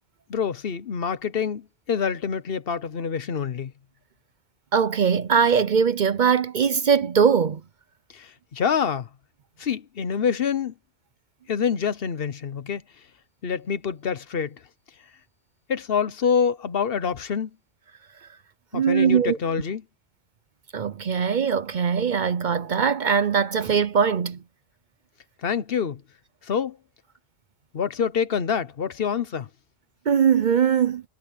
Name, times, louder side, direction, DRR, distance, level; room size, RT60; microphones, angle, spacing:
voice 1, 0.3-3.7 8.1-9.1 9.6-10.7 11.5-12.8 13.4-14.6 15.7-17.5 18.7-19.8 25.4-26.0 26.4-26.8 27.7-29.5, left 7 dB, 60° left, 1.1 m, -26 dB
voice 2, 4.7-7.6 18.7-19.4 20.7-24.4 30.1-31.0, right 7 dB, 50° right, 0.7 m, -21 dB
omnidirectional pair, 1.1 m